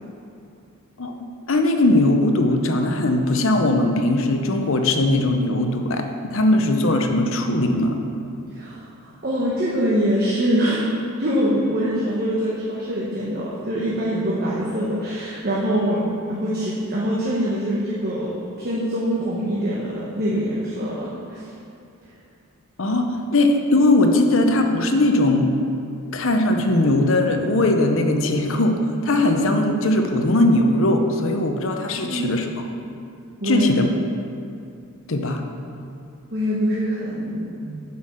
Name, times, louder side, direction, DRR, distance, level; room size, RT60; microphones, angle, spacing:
voice 1, 1.5-6.0 6.3-8.0 22.8-23.1 23.3-25.5 26.1-28.8 29.0-32.4 33.4-33.9 35.1-35.4, left 2 dB, 65° left, 4 dB, 0.8 m, -19 dB
voice 2, 9.2-10.8 11.2-21.5 31.9-32.4 33.4-33.7 36.3-37.8, equal, 45° right, -6 dB, 1.1 m, -24 dB
8.4 x 5.6 x 6.4 m, 2.5 s
head